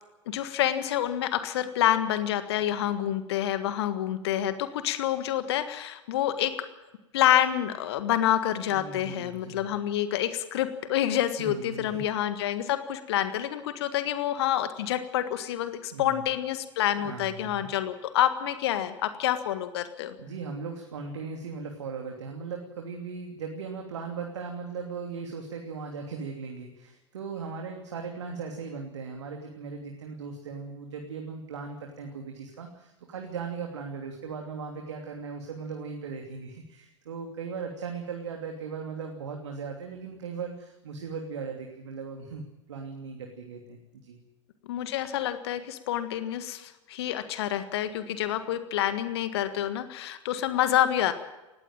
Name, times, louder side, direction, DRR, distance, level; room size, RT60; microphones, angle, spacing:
voice 1, 0.3-6.5 7.1-20.1 44.7-51.1, left 12 dB, 55° left, 11 dB, 1.7 m, -28 dB
voice 2, 8.7-9.7 11.4-12.0 15.9-16.2 17.0-17.7 20.2-42.4 42.7-44.2, right 5 dB, 65° right, 2 dB, 2.9 m, -38 dB
19.0 x 16.0 x 9.0 m, 1.0 s
figure-of-eight pair, 90°, 16 cm